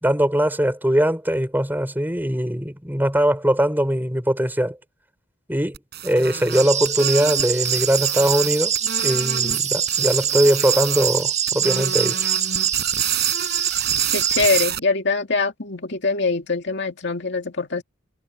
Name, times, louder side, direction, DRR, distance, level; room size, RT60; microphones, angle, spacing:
voice 1, 0.0-4.8 5.5-5.8 6.0-8.7 9.0-12.3, equal, 10° right, 4.6 m, -21 dB
sound 1, 5.7-9.6 9.9-11.2 11.5-14.8, right 9 dB, 55° right, 5.7 m, -30 dB
sound 2, 6.5-14.7, right 8 dB, 35° right, 1.8 m, -23 dB
voice 2, 14.1-17.8, left 4 dB, 60° left, 2.3 m, -23 dB
head